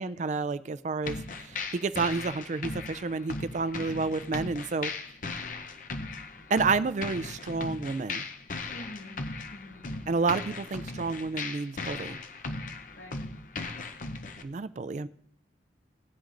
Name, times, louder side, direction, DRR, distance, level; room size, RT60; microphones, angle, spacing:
voice 1, 0.0-4.9 6.5-8.2 10.1-12.2 14.4-15.1, right 4 dB, 40° right, 16 dB, 0.3 m, -30 dB
sound 1, 1.0-14.4, left 3 dB, 45° left, 0.7 m, -38 dB
voice 2, 8.7-9.2 9.5-9.9 13.0-13.2, left 1 dB, 80° left, 1 dB, 2.0 m, -46 dB
17.5 x 10.0 x 2.6 m, 0.65 s
head